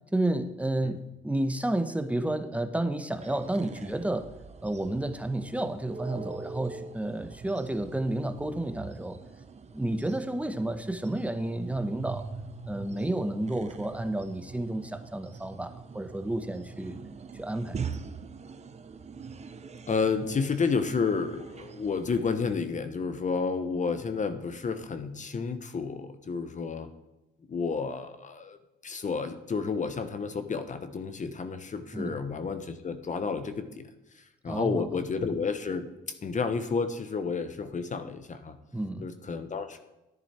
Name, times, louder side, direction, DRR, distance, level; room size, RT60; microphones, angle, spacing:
voice 1, 0.1-4.3 4.6-9.2 9.7-12.3 12.6-17.0 17.4-17.8 31.9-32.1 34.5-34.9 38.7-39.1, right 1 dB, 5° right, 8 dB, 1.1 m, -31 dB
sound 1, 3.2-22.6, right 5 dB, 35° right, 0.9 m, -43 dB
voice 2, 19.9-26.9 27.5-28.6 28.8-33.9 34.1-35.9 36.2-38.6 39.0-39.8, left 5 dB, 40° left, 9 dB, 1.1 m, -31 dB
11.0 x 10.0 x 4.4 m, 0.96 s
cardioid pair, 90°, 20 cm